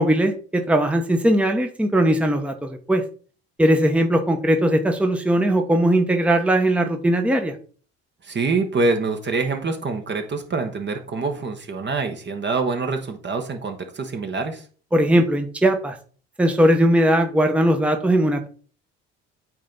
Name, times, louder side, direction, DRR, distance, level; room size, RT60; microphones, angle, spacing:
voice 1, 0.0-3.0 3.6-7.5 14.9-16.0 16.4-18.5, right 1 dB, 5° right, 5 dB, 1.0 m, -19 dB
voice 2, 8.2-14.6, right 3 dB, 35° right, 5 dB, 1.2 m, -25 dB
8.7 x 3.2 x 4.0 m, 0.41 s
hypercardioid pair, 60°, 33 cm